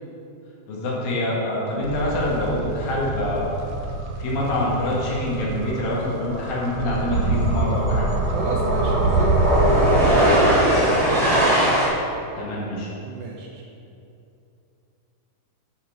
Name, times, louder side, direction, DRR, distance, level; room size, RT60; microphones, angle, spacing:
voice 1, 0.7-3.5 4.2-8.1 12.4-12.9, left 1 dB, 75° left, -5 dB, 3.4 m, -25 dB
sound 1, 1.8-10.2, right 3 dB, 90° right, 1.5 m, -25 dB
sound 2, 5.3-5.4 5.6-11.9, equal, ahead, 0.6 m, -21 dB
voice 2, 8.3-11.5 13.0-13.6, right 3 dB, 70° right, -1 dB, 2.1 m, -31 dB
8.9 x 6.7 x 4.9 m, 2.7 s
omnidirectional pair, 4.2 m